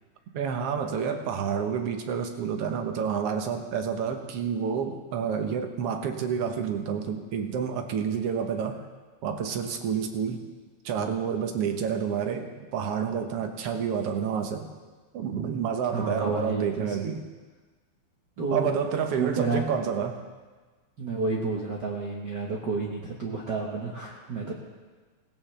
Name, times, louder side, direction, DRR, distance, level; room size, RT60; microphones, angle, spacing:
voice 1, 0.3-8.8 9.2-10.4 10.9-14.7 15.1-17.2 18.5-20.2 24.4-24.5, right 7 dB, 65° right, 6 dB, 1.8 m, -29 dB
voice 2, 15.9-17.0 18.4-18.7 19.1-19.6 21.0-24.5, right 3 dB, 45° right, -3 dB, 1.5 m, -30 dB
18.0 x 16.0 x 3.4 m, 1.4 s
omnidirectional pair, 3.4 m